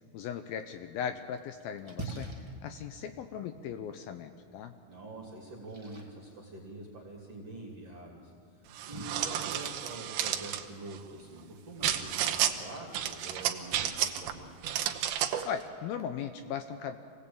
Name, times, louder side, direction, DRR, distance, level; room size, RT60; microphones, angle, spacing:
voice 1, 0.1-2.3 2.6-4.7 15.4-17.0, left 8 dB, 75° left, 8 dB, 2.3 m, -38 dB
Splash splatter, 1.2-13.9, right 2 dB, 15° right, 1.1 m, -50 dB
voice 2, 4.9-14.5, right 2 dB, 40° right, -2 dB, 3.4 m, -45 dB
sound 1, 8.8-10.6 11.8-12.5 12.9-14.3 14.6-15.5, right 11 dB, 70° right, 2.6 m, -31 dB
26.0 x 18.5 x 8.7 m, 2.4 s
omnidirectional pair, 4.8 m